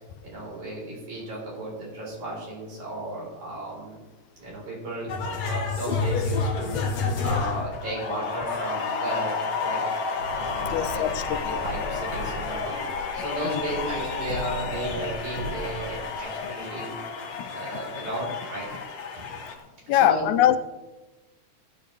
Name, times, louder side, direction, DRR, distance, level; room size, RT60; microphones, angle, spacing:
voice 1, 0.2-4.0 4.4-9.8 10.3-11.0 11.4-12.8 13.1-17.0 17.5-18.7 19.1-19.3 19.9-20.5, right 1 dB, 80° right, -4 dB, 5.9 m, -34 dB
sound 1, 5.1-19.6, left 4 dB, 60° left, 2.4 m, -30 dB
Writing, 10.1-16.2, equal, 55° right, 3.7 m, -38 dB
voice 2, 10.7-11.6 13.5-13.6 17.4-17.5 19.9-20.6, left 12 dB, 90° left, 12 dB, 2.1 m, -23 dB
16.0 x 10.0 x 3.4 m, 1.1 s
omnidirectional pair, 3.3 m